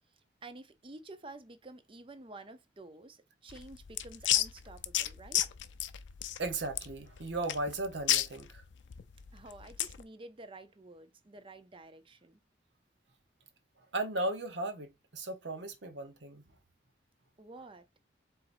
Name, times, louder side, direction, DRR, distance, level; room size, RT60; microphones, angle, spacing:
voice 1, 0.1-5.4 9.3-12.4 17.4-17.9, right 2 dB, 30° right, 0.6 m, -50 dB
sound 1, 3.5-10.0, left 13 dB, 85° left, 0.5 m, -33 dB
voice 2, 6.4-8.6 13.9-16.4, right 2 dB, 75° right, 1.1 m, -36 dB
4.6 x 3.9 x 2.6 m
head